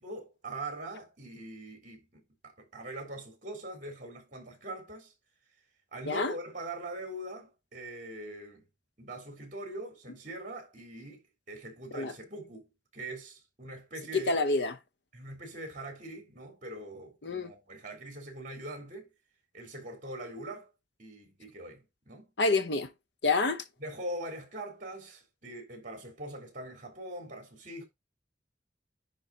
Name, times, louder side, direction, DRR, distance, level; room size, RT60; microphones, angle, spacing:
voice 1, 0.0-5.1 5.9-8.6 9.0-14.4 15.1-19.1 19.5-20.7 21.0-22.3 23.8-27.9, right 1 dB, 45° right, 3.4 m, -42 dB
voice 2, 14.1-14.7 17.2-17.5 22.4-22.9 23.2-23.6, left 3 dB, 65° left, 0.8 m, -27 dB
10.0 x 3.7 x 4.0 m
head